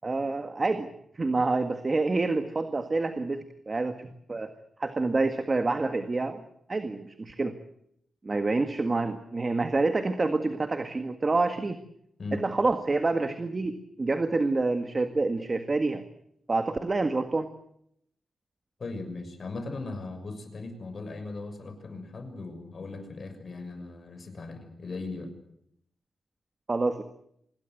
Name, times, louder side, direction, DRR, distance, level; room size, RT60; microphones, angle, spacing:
voice 1, 0.0-0.9 1.1-4.5 4.8-6.4 6.7-7.5 8.2-11.8 12.3-16.0 16.5-17.5 26.7-27.0, right 3 dB, 30° right, 8 dB, 1.8 m, -27 dB
voice 2, 18.8-25.3, left 3 dB, 50° left, 7 dB, 6.6 m, -38 dB
26.0 x 20.0 x 8.0 m, 0.73 s
wide cardioid pair, 120°, 0 cm